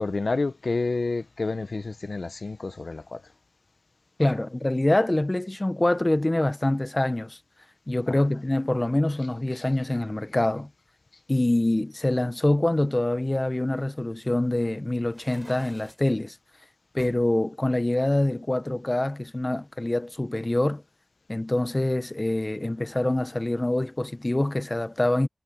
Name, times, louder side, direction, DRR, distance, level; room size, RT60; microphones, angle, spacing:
voice 1, 0.0-3.2 8.1-8.2 9.5-9.6, left 3 dB, 70° left, 0.8 m, -29 dB
voice 2, 4.2-7.4 7.9-10.7 11.3-16.4 16.9-20.8 21.3-25.3, left 1 dB, 30° left, 0.7 m, -25 dB
sound 1, 15.0-16.1 17.0-17.3 17.9-19.0, right 1 dB, 20° right, 6.1 m, -49 dB
cardioid pair, 45°, 0 cm